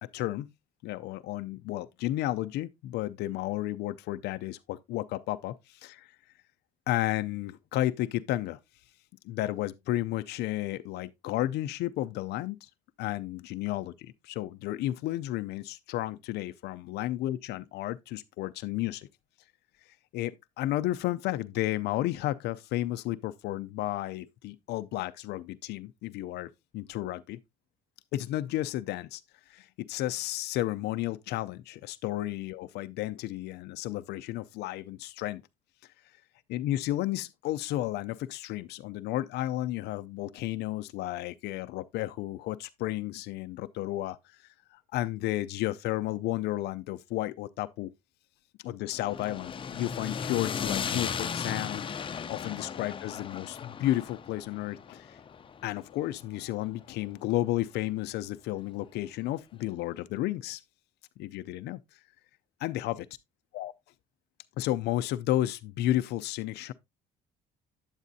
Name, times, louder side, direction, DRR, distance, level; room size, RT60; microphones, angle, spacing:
voice 1, 0.1-0.5 0.8-6.2 6.9-8.6 9.2-12.7 13.0-19.1 20.1-27.4 28.1-29.2 29.5-35.4 36.5-47.9 48.6-51.8 52.3-55.2 55.6-60.6 61.2-61.8 62.6-63.1 63.5-63.7 64.6-66.7, left 15 dB, 80° left, 0.5 m, -32 dB
sound 1, 48.9-57.2, left 7 dB, 30° left, 0.6 m, -36 dB
8.8 x 8.3 x 2.7 m
cardioid pair, 110°, 17 cm